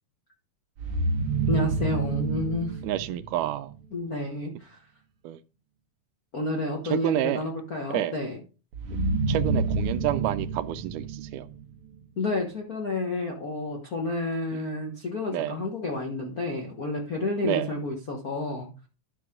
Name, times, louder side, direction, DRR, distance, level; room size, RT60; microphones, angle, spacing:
sound 1, 0.8-3.8 8.7-11.9, right 3 dB, 60° right, 1.6 m, -28 dB
voice 1, 1.5-2.8 3.9-4.8 6.3-8.4 12.2-18.7, left 2 dB, 60° left, 0.9 m, -30 dB
voice 2, 2.8-3.7 5.2-5.4 6.9-7.5 7.9-8.2 9.3-11.5 15.3-15.6 17.4-17.7, right 13 dB, 85° right, 2.1 m, -29 dB
11.0 x 5.8 x 3.7 m
omnidirectional pair, 3.6 m